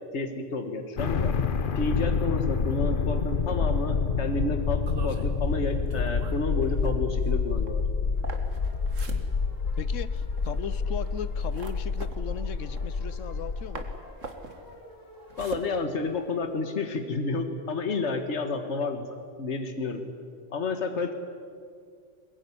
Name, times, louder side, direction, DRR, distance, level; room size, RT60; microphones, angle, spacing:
voice 1, 0.1-1.3 1.8-7.8 15.4-19.0 19.4-20.0 20.5-21.1, left 3 dB, 65° left, 6 dB, 1.9 m, -30 dB
sound 1, 1.0-14.0, left 5 dB, 45° left, 1.0 m, -28 dB
sound 2, 4.8-13.5 13.7-16.6, right 3 dB, 85° right, 2.2 m, -43 dB
sound 3, 8.1-15.5, equal, 15° left, 4.7 m, -52 dB
voice 2, 9.8-13.8, left 7 dB, 90° left, 15 dB, 1.2 m, -37 dB
22.0 x 21.0 x 9.9 m, 2.2 s
omnidirectional pair, 1.3 m